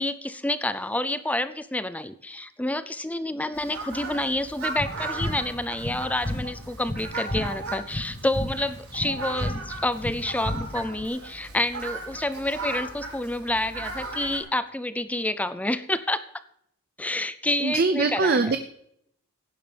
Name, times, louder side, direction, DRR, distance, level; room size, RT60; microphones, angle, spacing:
voice 1, 0.0-16.2 17.0-18.5, left 1 dB, 5° left, 13 dB, 0.5 m, -28 dB
Fowl, 3.5-14.4, right 3 dB, 80° right, 6.0 m, -37 dB
sound 1, 4.8-11.1, left 1 dB, 25° left, 0.9 m, -33 dB
voice 2, 17.6-18.6, right 4 dB, 45° right, 9 dB, 0.6 m, -22 dB
16.0 x 11.0 x 3.4 m, 0.71 s
head